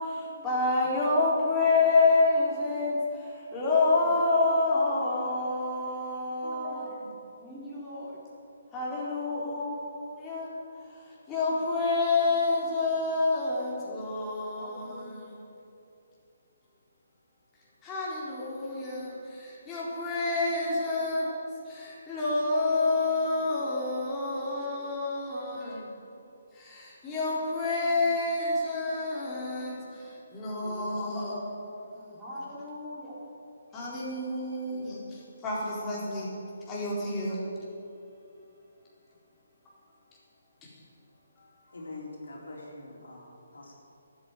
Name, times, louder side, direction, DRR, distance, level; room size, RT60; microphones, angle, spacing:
voice 1, 0.0-7.1 8.7-10.5 11.3-15.4 17.8-21.4 21.7-25.8 26.5-31.4 33.7-36.3 36.7-37.4 40.6-40.7, left 3 dB, 15° left, -6 dB, 4.1 m, -28 dB
voice 2, 1.0-1.5 4.0-4.5 6.4-6.9 7.4-8.2 14.5-15.4 30.6-33.3, equal, 10° right, -8 dB, 4.0 m, -43 dB
voice 3, 41.7-43.7, left 2 dB, 75° left, -2 dB, 3.9 m, -44 dB
12.0 x 9.5 x 9.2 m, 2.8 s
figure-of-eight pair, 145°, 0 cm